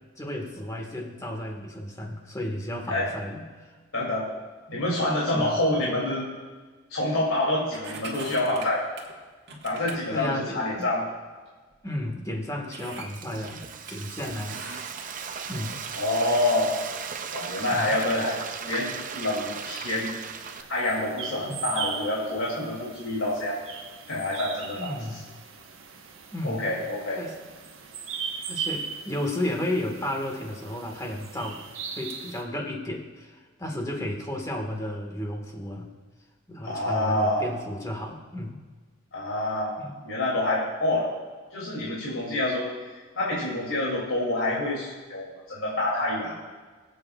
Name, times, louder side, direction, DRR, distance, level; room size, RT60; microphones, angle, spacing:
voice 1, 0.2-3.5 5.3-5.6 9.5-9.6 10.1-10.9 11.8-14.7 15.5-15.8 17.7-17.9 21.4-21.6 24.8-25.3 26.3-26.6 27.2-27.3 28.5-31.7 31.9-35.9 36.5-38.6 39.8-40.0, left 1 dB, 15° left, 1 dB, 1.6 m, -33 dB
voice 2, 3.9-4.3 4.7-6.3 6.9-8.9 9.6-11.1 15.9-16.8 17.3-20.1 20.7-23.6 24.1-24.9 26.4-27.2 36.6-37.4 39.1-39.7 40.0-41.1 41.5-42.7 43.2-46.4, left 1 dB, 85° left, -5 dB, 2.7 m, -27 dB
sound 1, 7.7-9.2 9.5-10.0 10.8-10.9 11.7-11.8 12.1-12.2 12.7-13.9 14.5-15.4 15.9-17.1 17.6-17.7, right 4 dB, 55° right, 1.6 m, -42 dB
Frying (food), 12.7-20.6, right 6 dB, 40° right, 0.5 m, -37 dB
sound 2, 15.0-32.4, right 6 dB, 75° right, 1.2 m, -40 dB
23.0 x 8.1 x 2.4 m, 1.4 s
head